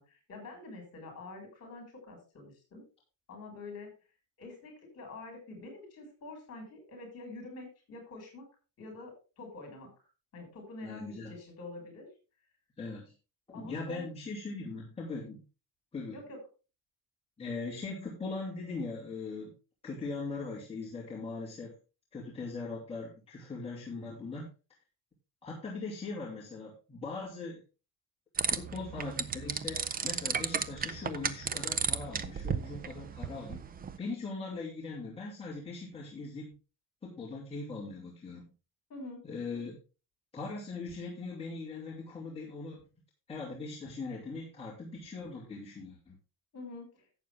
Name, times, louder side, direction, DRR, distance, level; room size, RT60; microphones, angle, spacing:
voice 1, 0.0-2.8 3.3-3.9 4.4-8.5 8.8-9.9 10.3-12.1 13.5-14.1 16.1-16.4 38.9-39.2 46.5-47.0, left 2 dB, 40° left, 3 dB, 6.4 m, -46 dB
voice 2, 10.8-11.3 12.8-13.1 13.5-15.4 15.9-16.2 17.4-19.5 19.8-21.7 22.1-24.5 25.4-27.6 28.4-33.6 34.0-36.5 37.0-38.5 39.2-39.8 40.3-42.8 43.3-46.1, left 3 dB, 15° left, -6 dB, 2.8 m, -40 dB
sound 1, 28.4-34.0, right 6 dB, 25° right, 0.5 m, -34 dB
11.5 x 8.2 x 3.7 m, 0.32 s
cardioid pair, 175°, 37 cm